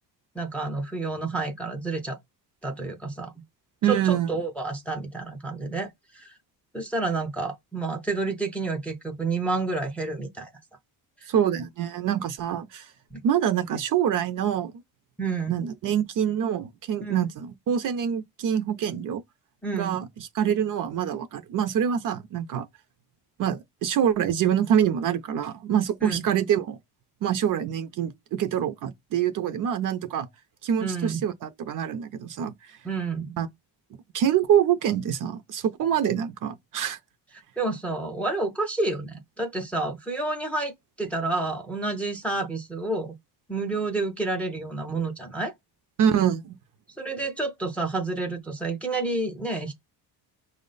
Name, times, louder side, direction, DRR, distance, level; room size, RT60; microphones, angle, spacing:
voice 1, 0.3-2.2 2.6-3.3 3.8-6.3 6.7-10.5 11.2-11.3 13.1-13.2 15.2-15.6 17.0-17.3 19.6-20.1 26.0-26.2 30.8-31.2 32.8-33.4 37.6-43.1 43.5-45.5 47.0-49.7, right 3 dB, 5° left, 0.4 m, -29 dB
voice 2, 3.8-4.3 11.3-12.9 13.2-14.7 15.5-19.2 19.7-22.7 23.4-26.8 27.2-30.3 30.6-32.8 33.4-33.5 34.1-37.0 46.0-46.6, right 9 dB, 50° right, 0.5 m, -25 dB
5.7 x 2.1 x 3.8 m
cardioid pair, 160°, 41 cm